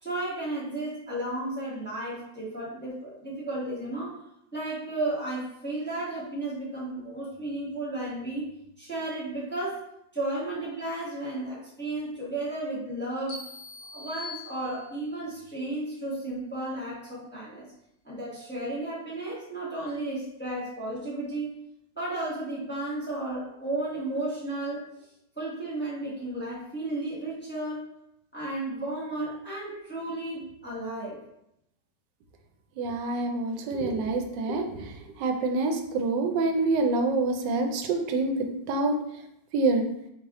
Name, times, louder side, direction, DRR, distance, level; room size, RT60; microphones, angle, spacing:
voice 1, 0.0-4.1 4.5-8.5 8.8-9.8 10.1-13.5 13.9-17.7 18.0-21.5 22.0-24.8 25.4-27.8 28.3-31.2, right 2 dB, 10° left, -7 dB, 1.0 m, -33 dB
sound 1, 13.3-15.2, left 2 dB, 85° left, 1.8 m, -42 dB
voice 2, 32.8-34.9 35.2-38.4 38.7-38.9 39.5-39.8, right 3 dB, 80° right, 4 dB, 1.2 m, -26 dB
4.1 x 3.3 x 3.6 m, 0.80 s
omnidirectional pair, 1.9 m